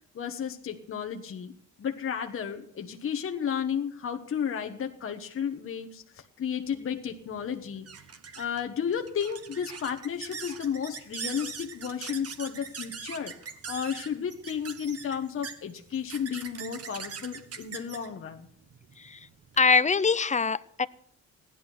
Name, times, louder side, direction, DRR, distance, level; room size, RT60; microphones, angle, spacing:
voice 1, 0.1-1.5 1.8-7.9 8.4-13.3 13.7-18.5, left 8 dB, 45° left, 4 dB, 1.2 m, -33 dB
sound 1, 6.7-19.6, right 6 dB, 50° right, 1.6 m, -42 dB
voice 2, 19.0-19.3 19.6-20.9, left 5 dB, 25° left, 17 dB, 0.6 m, -23 dB
15.5 x 11.0 x 6.1 m, 0.65 s
cardioid pair, 90°, 30 cm